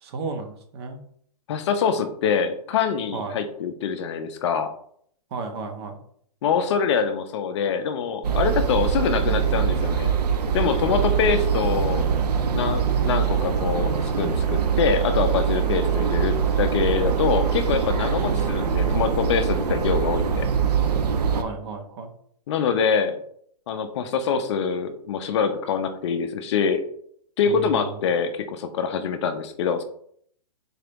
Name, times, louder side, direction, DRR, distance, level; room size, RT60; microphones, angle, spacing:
voice 1, 0.0-1.0 3.1-3.4 5.3-6.0 21.3-22.1 27.4-27.9, right 3 dB, 40° right, 5 dB, 0.7 m, -33 dB
voice 2, 1.5-4.7 6.4-10.1 10.5-12.0 12.5-20.5 22.5-23.2 23.7-26.8 27.4-29.8, left 6 dB, 45° left, 8 dB, 0.5 m, -24 dB
sound 1, 8.2-21.4, right 7 dB, 75° right, 0.6 m, -23 dB
3.9 x 2.8 x 3.4 m, 0.64 s
hypercardioid pair, 140°, 20 cm